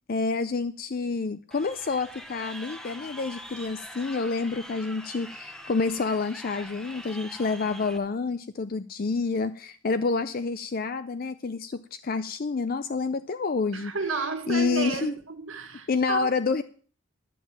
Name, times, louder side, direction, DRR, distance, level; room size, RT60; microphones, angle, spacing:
voice 1, 0.1-13.9 14.5-15.1 15.9-16.6, left 4 dB, 45° left, 0.5 m, -28 dB
Crowd, 1.5-8.0, equal, 5° left, 1.0 m, -43 dB
voice 2, 13.7-16.3, right 4 dB, 80° right, 1.8 m, -32 dB
11.5 x 7.3 x 7.4 m
head